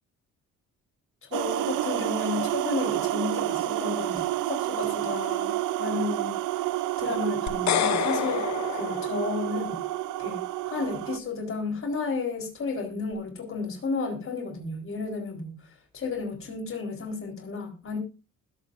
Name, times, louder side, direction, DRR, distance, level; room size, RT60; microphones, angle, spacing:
voice 1, 1.2-6.7 7.0-8.5 8.7-9.8 10.2-18.0, left 4 dB, 45° left, 2 dB, 4.2 m, -33 dB
sound 1, 1.3-11.2, right 15 dB, 90° right, 0.8 m, -29 dB
sound 2, 7.5-9.8, left 11 dB, 65° left, 0.9 m, -29 dB
20.5 x 7.4 x 2.6 m, 0.31 s
cardioid pair, 90°, 30 cm